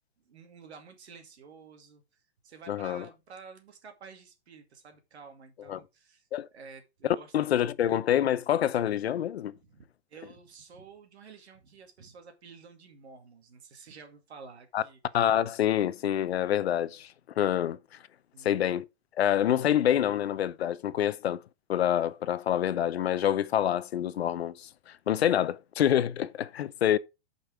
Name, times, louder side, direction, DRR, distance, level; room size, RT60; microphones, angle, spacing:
voice 1, 0.2-7.5 9.6-9.8 10.1-15.0 18.3-18.7 20.9-21.0, right 5 dB, 70° right, 2.4 m, -51 dB
voice 2, 2.7-3.0 5.7-5.8 6.3-6.5 7.0-9.5 14.7-14.8 15.1-17.8 18.4-18.9 19.2-21.4 21.7-27.0, left 10 dB, 65° left, 0.7 m, -27 dB
8.1 x 5.4 x 4.8 m
hypercardioid pair, 180°, 34 cm